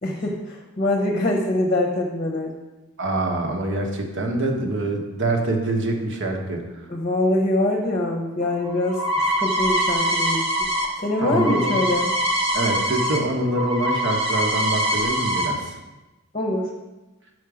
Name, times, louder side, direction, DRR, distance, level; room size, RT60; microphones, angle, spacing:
voice 1, 0.0-2.5 6.9-10.5 11.0-12.1 16.3-16.7, left 1 dB, 30° left, 0 dB, 0.8 m, -24 dB
voice 2, 3.0-6.8 11.2-11.8 12.5-15.7, right 2 dB, 55° right, 2 dB, 1.1 m, -25 dB
sound 1, 8.4-13.2 13.5-15.5, equal, 25° right, 1.1 m, -23 dB
6.3 x 5.9 x 4.9 m, 1.1 s
head